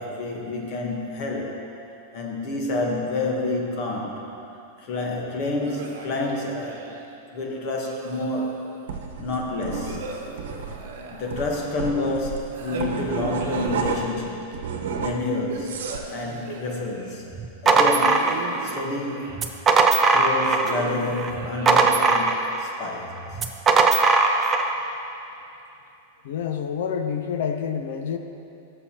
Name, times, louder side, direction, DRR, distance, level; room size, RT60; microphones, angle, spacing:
voice 1, 0.0-1.6 2.1-4.3 4.8-7.0 7.3-8.6 9.2-10.2 11.1-14.6 15.0-17.2 17.6-18.3 18.6-19.4 20.1-23.4, left 2 dB, 30° left, -1 dB, 1.2 m, -29 dB
sound 1, 5.6-7.1 7.9-8.8 9.7-11.9 12.5-14.4 15.5-17.2 18.1-19.7 20.6-22.6, right 4 dB, 65° right, 1.1 m, -38 dB
sound 2, 8.9-14.2 14.5-16.1, right 5 dB, 85° right, 1.0 m, -31 dB
sound 3, 17.3-18.8 19.3-20.8 21.1-22.7 23.3-24.7, right 4 dB, 15° right, 0.4 m, -19 dB
voice 2, 26.2-28.2, left 7 dB, 60° left, 6 dB, 0.5 m, -28 dB
16.0 x 7.0 x 2.9 m, 2.8 s
supercardioid pair, 180°, 0 cm